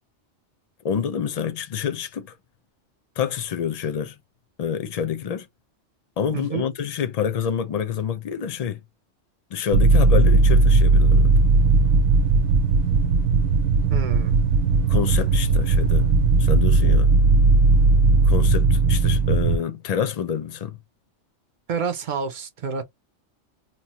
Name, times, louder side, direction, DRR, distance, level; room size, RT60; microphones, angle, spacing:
voice 1, 0.8-2.3 3.2-4.2 4.6-5.5 6.2-8.8 9.5-11.3 14.9-17.1 18.3-20.8, left 8 dB, 50° left, 0.5 m, -27 dB
voice 2, 6.3-6.7 13.9-14.3 21.7-22.8, right 6 dB, 60° right, 0.5 m, -28 dB
sound 1, 9.7-19.6, right 3 dB, 80° right, 0.9 m, -17 dB
2.9 x 2.0 x 2.8 m
omnidirectional pair, 1.2 m